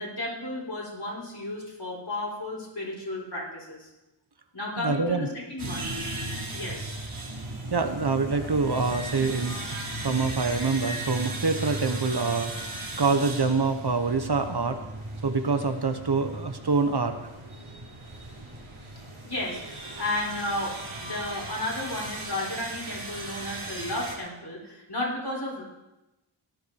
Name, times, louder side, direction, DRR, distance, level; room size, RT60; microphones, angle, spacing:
voice 1, 0.0-3.9 4.5-5.9 6.5-7.0 19.2-25.6, left 1 dB, 55° left, -4 dB, 6.3 m, -33 dB
voice 2, 4.8-5.3 7.7-12.7 13.0-14.8 15.2-17.2, right 4 dB, 50° right, 7 dB, 1.3 m, -26 dB
sound 1, 5.6-24.2, right 2 dB, 85° right, 3.3 m, -37 dB
17.0 x 10.5 x 4.8 m, 0.98 s
wide cardioid pair, 50°, 48 cm